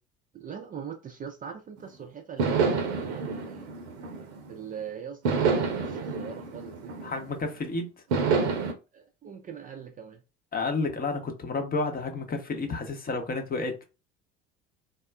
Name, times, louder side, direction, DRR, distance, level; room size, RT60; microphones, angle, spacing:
voice 1, 0.3-3.7 4.5-6.9 8.9-10.2, right 7 dB, 25° right, 0.5 m, -41 dB
sound 1, 1.8-1.9 2.4-4.6 5.2-7.5 8.1-8.7, right 5 dB, 70° right, 0.7 m, -28 dB
voice 2, 7.0-7.9 10.5-13.8, left 3 dB, 25° left, 0.8 m, -31 dB
3.5 x 2.3 x 2.2 m
figure-of-eight pair, 60°, 35 cm